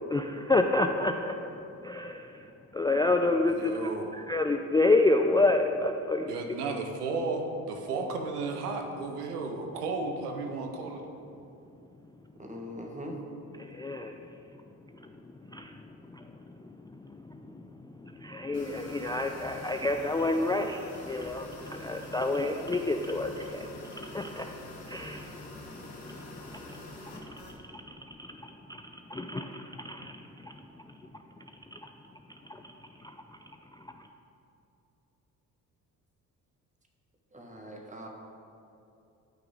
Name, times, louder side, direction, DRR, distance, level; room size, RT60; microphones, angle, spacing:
voice 1, 0.1-1.3 1.8-2.3 2.7-3.9 4.3-6.3 13.6-14.2 15.5-15.7 16.1-16.3 17.2-17.6 18.0-24.5 24.9-25.3 26.1-26.7 27.1-27.3 27.7-27.8 28.1-28.8 29.1-30.5 31.7-31.8 32.5-32.6, left 2 dB, 10° left, 4 dB, 0.4 m, -29 dB
voice 2, 3.4-4.1 6.3-11.0, right 3 dB, 90° right, 3 dB, 0.8 m, -34 dB
voice 3, 12.4-13.2 37.3-38.1, equal, 15° right, 1 dB, 1.7 m, -41 dB
sound 1, 18.5-27.6, left 1 dB, 80° left, 1.8 m, -46 dB
12.5 x 5.8 x 3.9 m, 2.8 s
hypercardioid pair, 50°, 45 cm